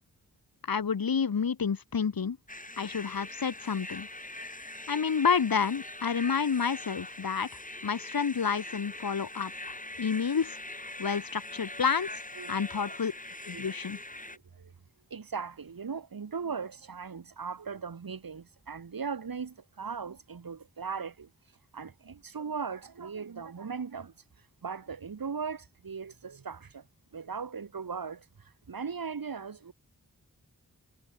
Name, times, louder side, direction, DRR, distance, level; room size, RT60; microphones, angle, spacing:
voice 1, 0.7-2.4 2.8-4.1 4.9-7.5 7.8-10.6 11.0-12.1 12.5-13.1 13.5-14.0, left 6 dB, 75° left, 1.9 m, -29 dB
sound 1, 2.5-14.4, left 2 dB, 20° left, 7.7 m, -42 dB
voice 2, 15.1-21.3 21.7-24.1 24.6-26.8 27.1-28.2 28.7-29.7, right 5 dB, 70° right, 2.7 m, -38 dB
wide cardioid pair, 75°, 36 cm